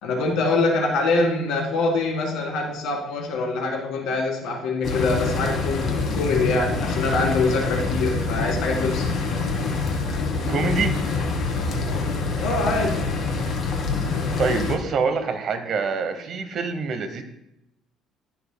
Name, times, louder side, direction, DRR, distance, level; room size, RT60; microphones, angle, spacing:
voice 1, 0.0-9.1 12.4-13.0, left 3 dB, 70° left, 1 dB, 1.9 m, -24 dB
sound 1, 4.8-14.8, left 4 dB, 45° left, 1.4 m, -25 dB
voice 2, 10.5-11.0 14.4-17.2, right 4 dB, 45° right, 8 dB, 0.9 m, -25 dB
11.5 x 6.9 x 2.2 m, 0.83 s
cardioid pair, 140°, 0 cm